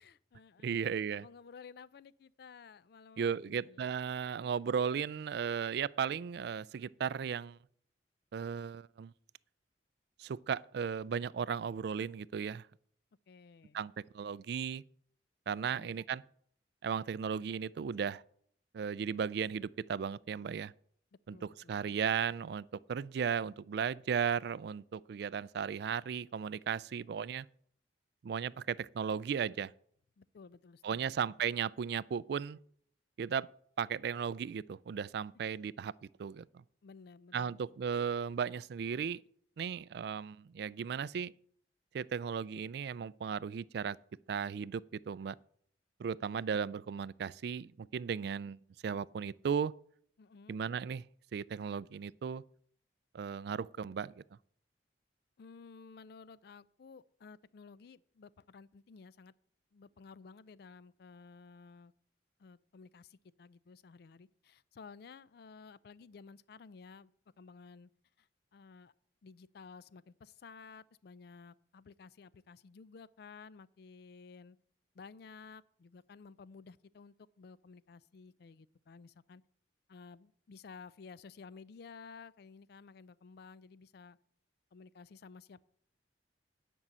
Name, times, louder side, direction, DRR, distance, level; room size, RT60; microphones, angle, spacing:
voice 1, 0.0-3.9 13.3-13.8 15.6-16.0 21.3-22.0 30.2-31.3 36.8-37.7 50.2-50.6 55.4-59.3 59.7-61.9 62.4-67.1 67.4-67.9 68.2-68.9 69.2-74.6 74.9-79.4 79.9-84.2 84.7-85.6, left 5 dB, 60° left, 0.4 m, -54 dB
voice 2, 0.6-1.2 3.2-7.6 8.3-9.1 10.2-12.7 13.7-14.8 15.5-16.2 16.8-18.2 18.7-20.7 21.3-27.5 28.2-29.7 30.8-32.6 33.2-33.5 33.8-35.9 36.2-36.6 37.3-39.2 39.6-41.3 41.9-44.0 44.3-45.4 46.0-49.7 50.5-51.0 51.3-52.4 53.1-54.2, right 7 dB, 60° right, 0.3 m, -36 dB
9.8 x 5.4 x 7.4 m
head